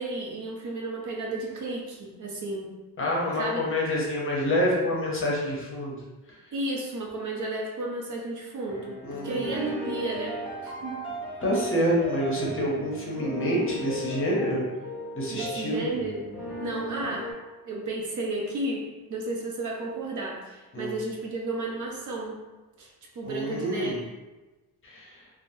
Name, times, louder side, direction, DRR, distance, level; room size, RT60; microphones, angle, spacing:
voice 1, 0.0-2.7 3.4-3.7 6.5-11.1 15.3-17.3 17.6-22.5 22.8-22.9 23.1-24.0, right 2 dB, 50° right, -1 dB, 0.7 m, -33 dB
voice 2, 3.0-6.0 9.0-9.6 11.4-14.6 15.1-15.9 20.7-20.9 23.2-24.0 24.8-25.2, equal, 30° left, -4 dB, 0.7 m, -27 dB
sound 1, 8.7-17.3, equal, 5° right, 0.7 m, -36 dB
3.0 x 2.0 x 2.6 m, 1.1 s
cardioid pair, 140°, 39 cm